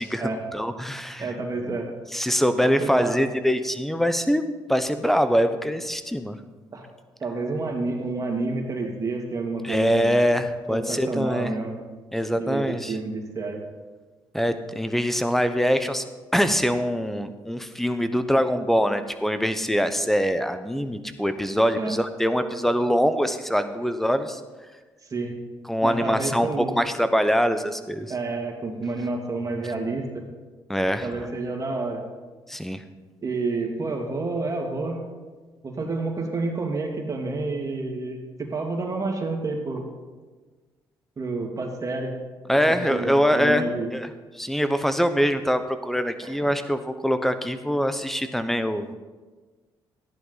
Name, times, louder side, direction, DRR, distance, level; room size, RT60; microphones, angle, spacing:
voice 1, 0.0-1.3 1.6-1.8 2.1-6.4 9.6-11.5 12.1-13.0 14.3-16.0 16.3-24.4 25.7-28.1 30.7-31.1 32.5-32.8 42.5-44.1 44.4-48.9, equal, 5° left, 10 dB, 0.9 m, -24 dB
voice 2, 1.2-1.9 2.6-3.2 6.7-6.8 7.2-10.1 10.7-11.7 12.4-13.6 21.7-21.9 25.0-25.4 25.8-26.7 28.1-30.2 31.0-32.0 33.2-35.0 35.6-39.8 41.2-42.1 42.5-43.9 46.2-46.3, right 3 dB, 40° right, 1 dB, 2.5 m, -29 dB
14.0 x 10.5 x 4.1 m, 1.3 s
supercardioid pair, 70°, 9 cm